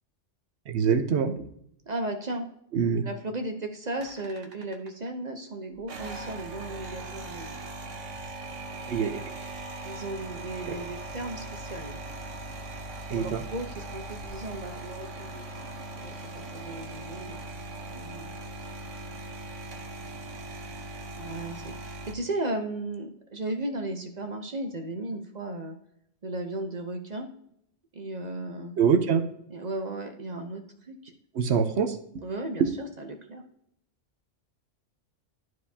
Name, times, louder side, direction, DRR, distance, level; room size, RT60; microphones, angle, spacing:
voice 1, 0.7-1.5 2.7-3.0 8.9-9.2 10.7-10.8 13.1-13.4 28.8-29.2 31.3-32.0, right 6 dB, 65° right, 8 dB, 1.0 m, -24 dB
voice 2, 1.9-2.5 3.0-7.5 9.8-12.0 13.1-15.5 16.0-17.4 17.9-18.3 21.2-25.7 26.2-27.3 27.9-28.7 29.5-31.1 32.2-33.4, right 2 dB, 40° right, 5 dB, 0.8 m, -35 dB
sound 1, 4.0-5.1 5.8-22.1, right 2 dB, 85° right, 1.3 m, -40 dB
12.5 x 4.7 x 2.8 m, 0.73 s
omnidirectional pair, 1.2 m